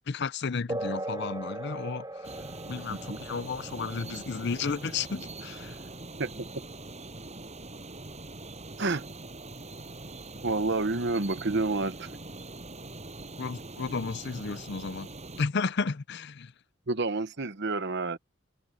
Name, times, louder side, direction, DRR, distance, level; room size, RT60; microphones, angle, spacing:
voice 1, 0.1-2.3 2.7-5.8 13.4-15.1 15.4-16.5, left 4 dB, 55° left, 0.6 m, -33 dB
sound 1, 0.7-8.7, right 1 dB, 20° right, 2.5 m, -41 dB
sound 2, 2.2-15.5, right 2 dB, 35° right, 7.4 m, -43 dB
voice 2, 2.9-3.2 6.2-6.3 8.8-9.1 10.4-12.1 16.9-18.2, right 3 dB, 60° right, 1.1 m, -29 dB
head